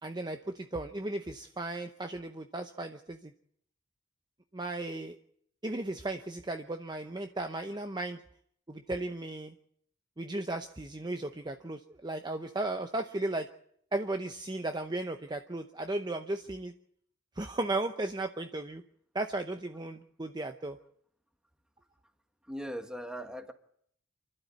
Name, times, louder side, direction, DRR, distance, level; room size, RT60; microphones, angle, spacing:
voice 1, 0.0-3.3 4.5-5.2 5.6-8.2 8.7-9.5 10.2-13.5 13.9-16.7 17.4-18.8 19.1-20.8, right 2 dB, 20° right, 6 dB, 0.7 m, -35 dB
voice 2, 22.4-23.5, equal, 5° right, 7 dB, 1.4 m, -39 dB
27.5 x 12.0 x 8.4 m, 0.67 s
head